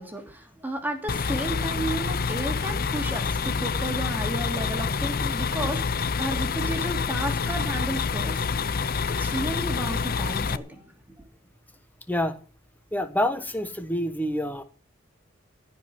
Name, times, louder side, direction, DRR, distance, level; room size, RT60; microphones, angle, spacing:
voice 1, 0.0-8.4 9.2-10.9, right 1 dB, 10° right, 3 dB, 2.8 m, -33 dB
sound 1, 1.1-10.6, left 5 dB, 45° left, 0.6 m, -27 dB
voice 2, 12.9-14.6, left 1 dB, 10° left, 9 dB, 1.2 m, -27 dB
15.5 x 5.5 x 9.6 m, 0.39 s
head